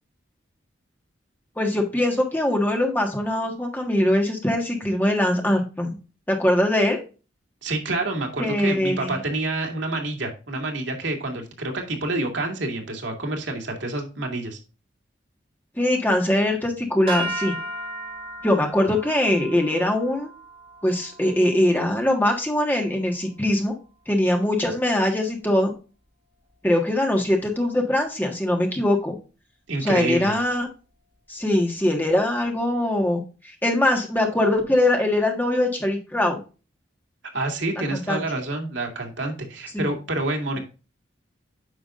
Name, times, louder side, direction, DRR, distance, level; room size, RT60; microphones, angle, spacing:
voice 1, 1.6-6.0 6.3-7.0 8.4-9.1 15.8-17.5 18.4-20.3 20.8-23.7 24.1-25.7 26.6-29.2 29.8-30.7 31.3-33.2 33.6-36.4 37.9-38.2 39.7-39.8, left 1 dB, 10° left, 2 dB, 1.5 m, -22 dB
voice 2, 7.6-14.6 29.7-30.4 37.3-40.6, right 2 dB, 80° right, 3 dB, 2.1 m, -28 dB
sound 1, 17.1-23.4, right 1 dB, 30° right, 4.3 m, -36 dB
9.3 x 5.9 x 2.5 m, 0.32 s
head